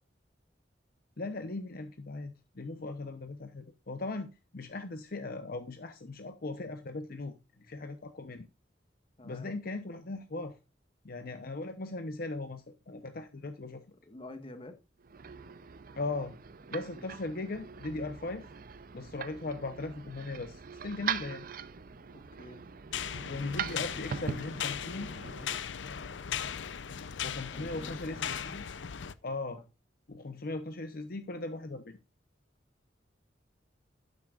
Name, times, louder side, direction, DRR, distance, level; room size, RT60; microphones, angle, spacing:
voice 1, 1.2-8.5 9.2-10.6 11.0-13.8 15.9-16.3 16.7-18.5 18.9-21.4 23.3-25.1 27.2-28.7 29.2-29.6 30.1-32.0, left 2 dB, 55° left, 0.8 m, -38 dB
voice 2, 9.2-9.5 14.0-14.8 16.9-17.1 22.1-22.6 27.5-28.4, left 1 dB, 30° left, 1.5 m, -48 dB
sound 1, 15.0-25.6, right 6 dB, 50° right, 0.6 m, -41 dB
sound 2, 22.9-29.1, left 8 dB, 85° left, 0.6 m, -38 dB
12.0 x 9.6 x 2.5 m
head